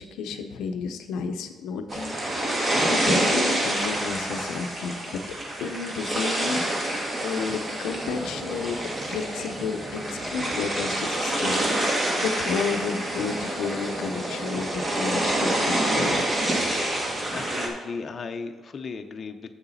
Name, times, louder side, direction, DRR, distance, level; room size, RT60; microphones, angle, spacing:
voice 1, 0.0-5.2 5.6-8.8 9.1-16.5, left 5 dB, 85° left, 6 dB, 0.6 m, -32 dB
sound 1, 1.9-17.7, right 1 dB, 30° right, 1.8 m, -27 dB
voice 2, 17.3-19.5, left 4 dB, 45° left, 6 dB, 0.6 m, -36 dB
7.2 x 6.9 x 4.1 m, 1.4 s
cardioid pair, 90°, 0 cm